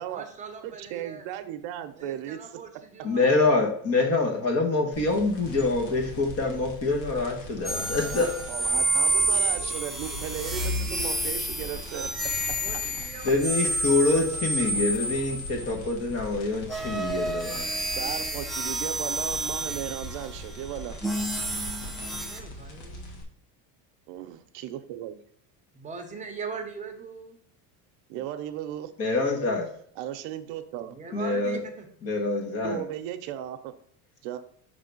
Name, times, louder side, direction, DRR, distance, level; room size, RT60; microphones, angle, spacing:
voice 1, 0.0-1.3 1.9-3.3 7.6-8.4 9.3-9.7 12.6-15.1 21.9-23.2 25.7-27.4 30.9-31.9, right 5 dB, 15° right, 2 dB, 0.9 m, -42 dB
voice 2, 0.6-2.4 8.5-12.1 18.0-21.0 24.1-25.2 28.1-28.9 30.0-31.0 32.6-33.7 34.2-34.4, right 11 dB, 75° right, 9 dB, 0.8 m, -36 dB
voice 3, 3.0-8.3 13.2-17.7 29.0-29.7 31.1-31.6 32.0-32.8, left 3 dB, 35° left, 2 dB, 1.2 m, -25 dB
sound 1, 4.9-23.2, left 1 dB, 85° left, 1.7 m, -42 dB
sound 2, 7.6-15.9 16.6-22.4, right 1 dB, ahead, 0.4 m, -29 dB
5.6 x 3.5 x 5.2 m, 0.65 s
cardioid pair, 150°, 42 cm